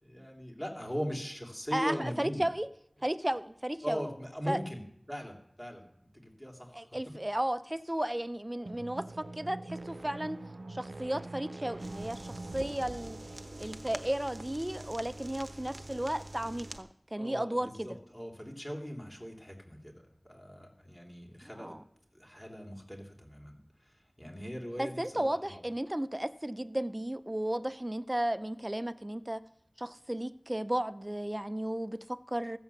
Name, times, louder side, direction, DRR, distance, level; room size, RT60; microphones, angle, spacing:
voice 1, 0.0-2.4 3.8-4.8 5.1-6.8 17.2-21.7 22.1-23.6 24.2-25.6, equal, 15° left, 0 dB, 3.1 m, -40 dB
voice 2, 1.7-2.7 3.0-4.0 4.5-4.6 6.7-10.4 10.7-13.2 13.6-18.0 21.4-21.8 24.8-29.4 29.8-32.6, right 1 dB, 25° right, 13 dB, 0.6 m, -34 dB
sound 1, 8.6-14.2, right 2 dB, 85° right, 0.4 m, -44 dB
sound 2, 11.8-16.8, right 1 dB, 65° right, 0.9 m, -46 dB
15.0 x 7.8 x 7.1 m, 0.75 s
wide cardioid pair, 45°, 0 cm